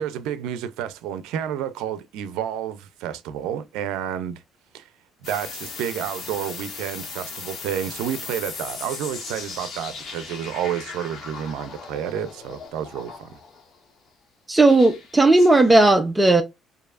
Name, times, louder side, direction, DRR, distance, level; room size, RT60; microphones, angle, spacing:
voice 1, 0.0-4.4 4.7-4.9 5.2-13.4, right 9 dB, 85° right, 0.5 m, -30 dB
sound 1, 5.2-13.7 14.6-15.7, left 5 dB, 55° left, 1.4 m, -38 dB
voice 2, 14.5-16.4, right 2 dB, 10° right, 0.6 m, -15 dB
4.7 x 2.7 x 2.4 m
cardioid pair, 95°, 0 cm